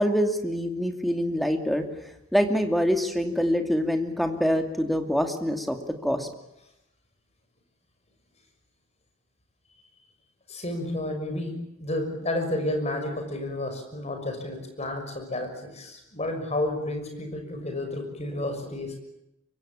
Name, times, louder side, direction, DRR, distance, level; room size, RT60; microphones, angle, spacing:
voice 1, 0.0-1.8 2.3-5.8 6.0-6.3, equal, ahead, 5 dB, 2.6 m, -25 dB
voice 2, 10.5-19.0, left 1 dB, 35° left, 5 dB, 6.2 m, -31 dB
25.0 x 23.5 x 8.8 m, 0.85 s
head